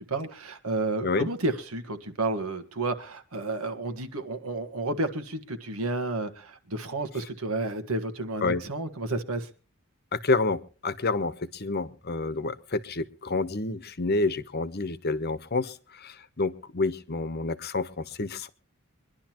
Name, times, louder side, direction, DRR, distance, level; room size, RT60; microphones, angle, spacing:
voice 1, 0.0-9.5, right 2 dB, 85° right, 8 dB, 1.6 m, -31 dB
voice 2, 10.1-15.7 16.0-18.5, left 3 dB, 50° left, 13 dB, 1.0 m, -28 dB
24.0 x 11.5 x 3.0 m, 0.35 s
head